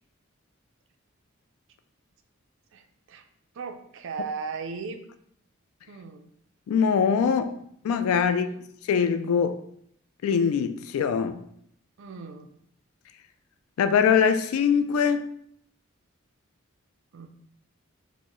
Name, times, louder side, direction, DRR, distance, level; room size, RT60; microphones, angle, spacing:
voice 1, 2.7-3.3 3.5-5.0 5.9-6.3 8.2-8.6 12.0-12.5 17.1-17.3, right 5 dB, 60° right, 0.4 m, -37 dB
voice 2, 6.7-7.6 7.8-8.5 8.9-9.6 10.2-11.4 13.8-15.3, left 6 dB, 85° left, 0.3 m, -22 dB
4.3 x 2.0 x 3.0 m
head